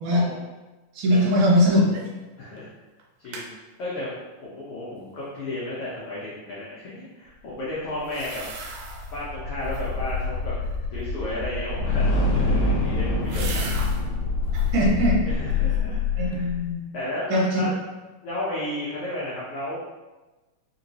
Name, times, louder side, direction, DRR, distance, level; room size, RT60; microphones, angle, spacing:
voice 1, 0.9-2.0 14.7-15.3 16.2-16.8 17.3-17.7, equal, 70° right, -5 dB, 2.3 m, -21 dB
sound 1, 1.9-2.3 2.6-2.7 3.0-3.5 8.0-9.2 9.6-10.1 12.1-14.0 14.4-14.9 15.3-16.0 16.3-16.4, right 4 dB, 90° right, 2.3 m, -39 dB
voice 2, 2.4-2.7 3.2-3.5 3.8-8.4 9.1-10.5 10.9-13.7 15.2-16.5 16.9-17.7 18.2-19.8, left 1 dB, 85° left, -8 dB, 1.2 m, -33 dB
sound 2, 8.2-16.6, left 3 dB, 70° left, 1.6 m, -25 dB
5.0 x 3.0 x 2.7 m, 1.2 s
omnidirectional pair, 3.8 m